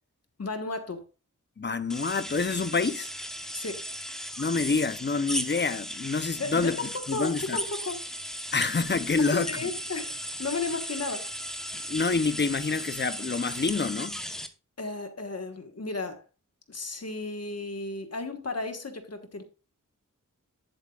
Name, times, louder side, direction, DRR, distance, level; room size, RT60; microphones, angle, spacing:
voice 1, 0.4-1.0 3.5-3.8 6.4-8.0 9.2-11.3 14.8-16.2 16.7-19.4, left 3 dB, 50° left, 1.4 m, -34 dB
voice 2, 1.6-3.1 4.4-6.8 7.1-7.6 8.5-9.7 11.9-14.2, left 4 dB, 35° left, 0.7 m, -27 dB
sound 1, 1.9-14.5, equal, ahead, 1.0 m, -36 dB
11.0 x 7.9 x 2.4 m
wide cardioid pair, 95°, 32 cm